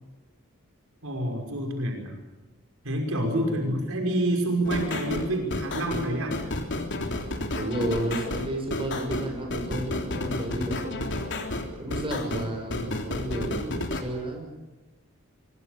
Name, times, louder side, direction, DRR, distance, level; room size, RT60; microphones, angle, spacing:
voice 1, 1.0-2.2 2.8-6.4, right 1 dB, 75° right, 2 dB, 5.8 m, -27 dB
voice 2, 3.3-3.7 7.5-11.1 11.8-14.5, right 1 dB, 25° right, 2 dB, 6.8 m, -32 dB
sound 1, 4.6-14.0, left 2 dB, 60° left, 3.4 m, -31 dB
25.0 x 23.0 x 6.9 m, 1.1 s
head